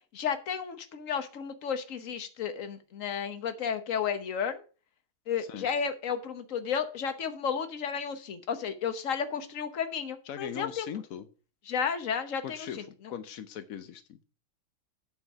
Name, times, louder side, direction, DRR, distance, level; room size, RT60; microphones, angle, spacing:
voice 1, 0.1-4.6 5.3-10.9 11.7-12.8, left 7 dB, 50° left, 10 dB, 1.1 m, -32 dB
voice 2, 10.2-11.2 12.4-14.2, left 9 dB, 75° left, 10 dB, 0.8 m, -40 dB
8.9 x 4.7 x 6.7 m, 0.36 s
omnidirectional pair, 2.3 m